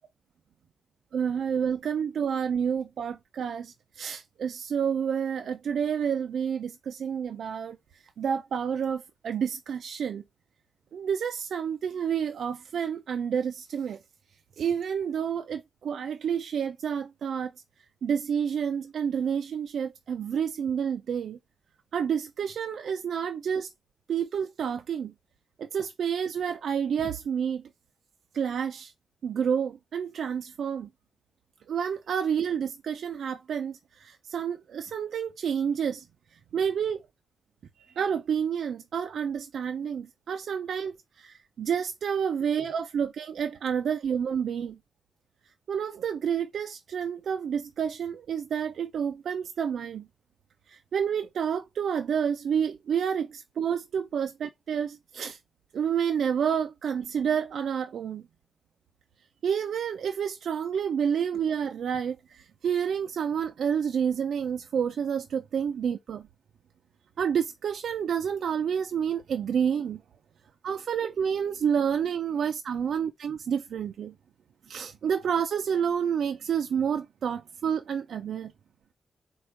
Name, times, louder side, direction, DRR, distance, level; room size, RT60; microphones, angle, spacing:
voice 1, 1.1-7.8 8.2-10.2 10.9-14.0 14.6-17.5 18.0-21.4 21.9-23.7 24.1-25.1 25.6-27.6 28.3-28.9 29.2-30.9 31.7-36.0 36.5-37.0 37.9-40.9 41.3-44.8 45.7-50.0 50.7-55.4 55.7-58.2 59.4-66.2 67.2-70.0 70.6-74.1 74.7-78.5, right 7 dB, 75° right, 0.3 m, -29 dB
4.2 x 2.3 x 4.5 m
wide cardioid pair, 135°, 0 cm